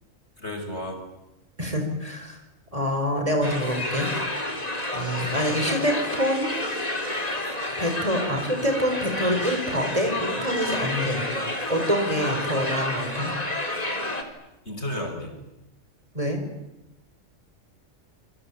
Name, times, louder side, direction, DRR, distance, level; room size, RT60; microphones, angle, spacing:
voice 1, 0.4-1.0 14.6-15.4, left 1 dB, 55° left, 3 dB, 6.7 m, -32 dB
voice 2, 1.6-2.4 2.7-4.1 4.9-6.5 7.8-11.3 11.7-13.3 16.1-16.4, equal, 25° right, 4 dB, 5.1 m, -26 dB
sound 1, 3.4-14.2, left 1 dB, 30° left, 3.4 m, -30 dB
27.5 x 24.5 x 8.7 m, 0.92 s
omnidirectional pair, 1.4 m